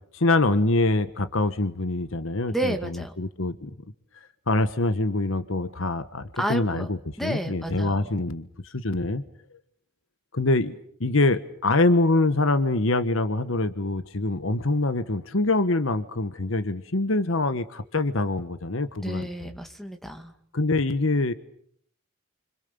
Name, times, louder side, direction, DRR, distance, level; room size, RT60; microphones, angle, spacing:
voice 1, 0.1-3.7 4.5-9.2 10.3-19.3 20.5-21.3, left 2 dB, 65° left, 11 dB, 1.3 m, -25 dB
voice 2, 2.5-3.1 6.4-6.9 7.2-8.1 19.0-20.3, right 1 dB, ahead, 6 dB, 2.3 m, -31 dB
30.0 x 26.5 x 7.0 m, 0.65 s
head